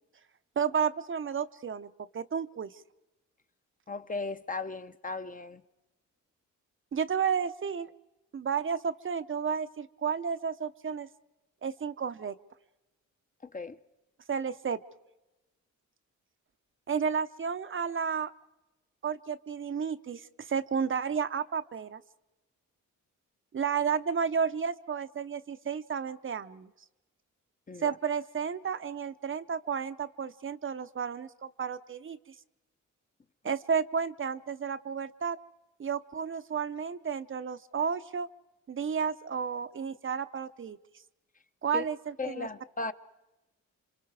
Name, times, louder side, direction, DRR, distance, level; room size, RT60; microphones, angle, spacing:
voice 1, 0.6-2.7 6.9-7.9 8.3-11.1 11.6-12.4 14.3-14.8 16.9-18.3 19.0-22.0 23.5-26.7 27.8-32.2 33.4-35.4 35.8-38.3 38.7-40.8 41.6-42.5, right 6 dB, 40° right, 0.7 m, -32 dB
voice 2, 3.9-5.6 13.4-13.8 27.7-28.0 41.7-41.9 42.2-42.9, left 3 dB, 25° left, 0.8 m, -36 dB
28.5 x 25.5 x 4.8 m
cardioid pair, 95°, 31 cm